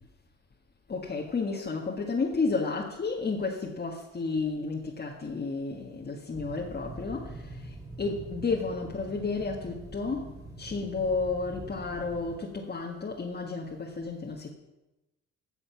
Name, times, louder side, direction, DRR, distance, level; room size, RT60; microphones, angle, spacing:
voice 1, 0.9-14.5, left 4 dB, 35° left, -1 dB, 1.8 m, -32 dB
sound 1, 6.3-12.4, right 2 dB, 15° right, 2.8 m, -44 dB
15.5 x 7.1 x 5.9 m, 1.0 s
cardioid pair, 90°, 30 cm